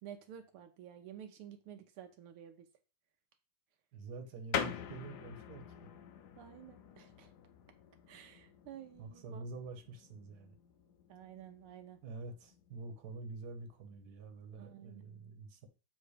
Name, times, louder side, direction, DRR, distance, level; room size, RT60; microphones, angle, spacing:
voice 1, 0.0-2.7 6.4-7.3 8.1-9.4 11.1-12.0 14.6-15.0, right 10 dB, 80° right, 1.6 m, -51 dB
voice 2, 3.9-5.6 9.0-10.5 12.0-15.7, right 3 dB, 55° right, 1.5 m, -47 dB
sound 1, 4.5-14.7, left 8 dB, 65° left, 1.0 m, -46 dB
7.8 x 3.2 x 4.8 m
omnidirectional pair, 2.4 m